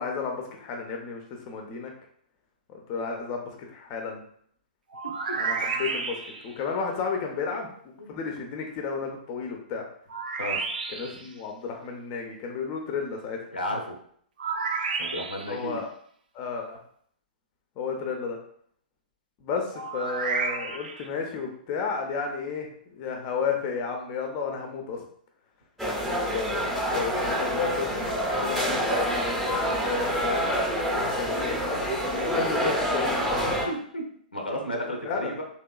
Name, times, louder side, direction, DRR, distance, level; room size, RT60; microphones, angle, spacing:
voice 1, 0.0-1.9 2.7-4.2 5.4-7.7 8.1-9.8 10.9-13.4 15.5-15.9 16.3-16.8 17.8-18.4 19.4-25.0 26.1-28.1 28.4-29.2 29.9-30.4 30.8-31.8 32.1-33.2 35.0-35.3, left 5 dB, 35° left, 2 dB, 0.6 m, -32 dB
sound 1, 4.9-6.6 10.1-11.3 14.4-15.6 19.7-21.1, right 4 dB, 70° right, 0.4 m, -31 dB
voice 2, 13.5-13.9 15.0-15.8 33.3-35.4, equal, 90° left, 1 dB, 0.8 m, -33 dB
sound 2, 25.8-33.7, equal, ahead, 0.7 m, -27 dB
3.2 x 2.9 x 2.3 m, 0.62 s
figure-of-eight pair, 115°, 5 cm